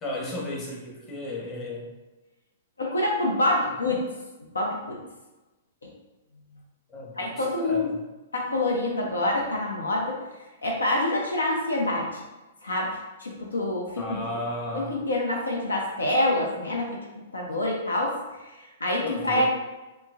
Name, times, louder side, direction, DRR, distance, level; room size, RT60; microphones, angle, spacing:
voice 1, 0.0-1.9 6.9-7.3 7.6-8.0 14.0-15.0 19.0-19.4, left 1 dB, 25° left, -3 dB, 0.9 m, -34 dB
voice 2, 2.8-4.0 4.5-5.0 7.2-7.9 8.3-10.2 10.6-12.2 12.6-14.2 14.7-16.9 17.3-19.4, left 1 dB, 85° left, 0 dB, 0.5 m, -26 dB
4.3 x 2.0 x 2.4 m, 1.1 s
hypercardioid pair, 115°, 0 cm